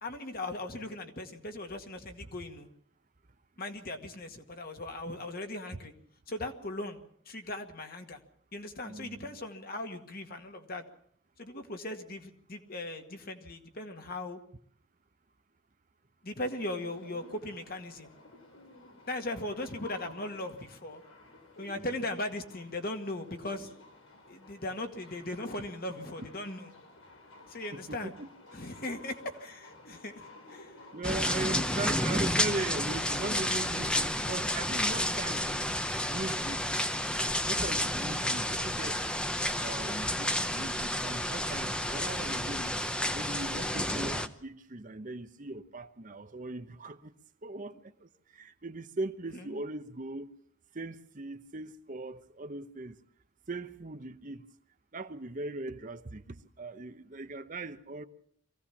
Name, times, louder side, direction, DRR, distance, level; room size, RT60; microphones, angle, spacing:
voice 1, 0.0-2.7 3.6-5.9 6.3-8.2 8.5-10.8 11.4-14.4 16.2-18.1 19.1-21.0 21.6-23.7 24.3-26.7 27.5-28.1 28.5-30.2 30.5-30.8 31.1-31.6 33.3-33.9 34.2-34.3 35.3-35.5 49.3-49.6, left 1 dB, 45° left, 1.9 m, -39 dB
voice 2, 8.8-9.3 21.8-21.9 27.7-28.3 30.9-35.7 36.1-36.6 37.4-39.0 39.6-42.8 43.1-47.1 47.4-50.3 50.7-53.0 53.5-54.4 54.9-58.0, right 2 dB, 40° right, 0.9 m, -39 dB
sound 1, 16.8-33.3, left 2 dB, 80° left, 3.9 m, -54 dB
sound 2, 31.0-44.3, left 1 dB, 5° left, 0.8 m, -31 dB
23.0 x 16.5 x 7.2 m
head